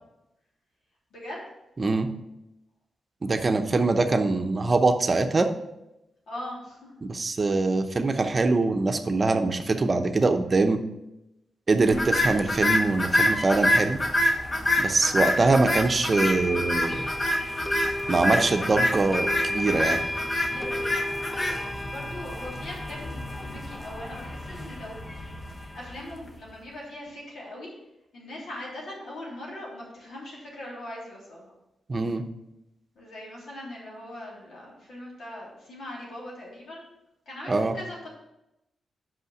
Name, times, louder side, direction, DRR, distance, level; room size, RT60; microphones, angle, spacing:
voice 1, 1.1-1.4 3.3-3.5 6.3-7.0 11.8-12.1 20.2-25.2 25.4-27.7 28.1-31.5 32.9-36.9 37.2-38.1, left 1 dB, 80° left, -4 dB, 3.2 m, -41 dB
voice 2, 1.8-2.1 3.2-5.5 7.0-10.8 11.7-14.0 14.8-17.0 18.1-20.0 31.9-32.2 37.5-37.7, right 3 dB, 40° right, 7 dB, 0.7 m, -23 dB
sound 1, 11.9-26.2, left 1 dB, 35° left, 1.1 m, -27 dB
sound 2, 15.1-15.2 16.1-26.2, left 1 dB, 5° left, 0.3 m, -34 dB
5.7 x 5.4 x 6.5 m, 0.90 s
cardioid pair, 65°, 0 cm